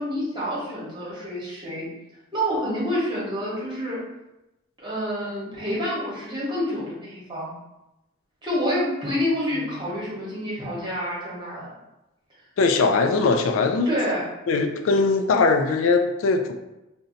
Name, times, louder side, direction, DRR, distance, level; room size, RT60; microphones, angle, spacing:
voice 1, 0.0-1.9 2.3-4.0 4.8-7.5 8.4-11.7 13.9-14.2, equal, 20° right, -6 dB, 0.9 m, -28 dB
voice 2, 12.6-13.9 14.5-16.5, left 4 dB, 65° left, 6 dB, 0.3 m, -20 dB
2.6 x 2.1 x 3.8 m, 0.96 s
head